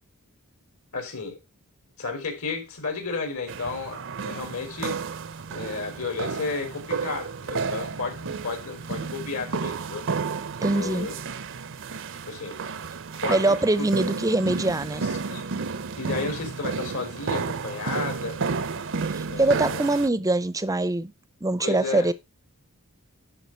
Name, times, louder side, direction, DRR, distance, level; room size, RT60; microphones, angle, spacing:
voice 1, 0.9-1.4 2.0-5.0 5.5-10.1 10.7-11.1 12.3-12.6 13.1-13.9 14.8-15.4 16.0-18.4 19.3-19.8 21.6-22.1, left 4 dB, 70° left, 4.0 m, -33 dB
sound 1, 3.5-20.1, right 5 dB, 60° right, 0.7 m, -32 dB
voice 2, 10.6-11.1 13.3-15.1 19.1-21.1 21.4-22.1, right 2 dB, 15° right, 0.6 m, -23 dB
11.5 x 5.0 x 4.5 m
head